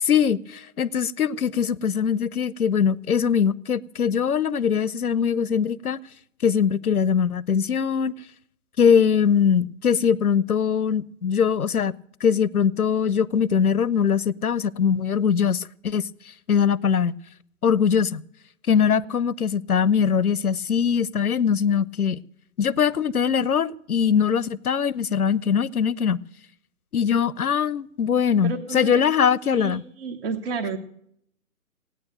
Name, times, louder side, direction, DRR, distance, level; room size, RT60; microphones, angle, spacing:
voice 1, 0.0-6.0 6.4-8.1 8.8-11.9 12.2-16.0 16.5-17.2 17.6-18.2 18.7-22.2 22.6-26.2 26.9-29.8, left 7 dB, 80° left, 0.8 m, -22 dB
voice 2, 28.4-30.8, right 5 dB, 40° right, 1.5 m, -32 dB
17.0 x 9.6 x 7.7 m
figure-of-eight pair, 140°, 43 cm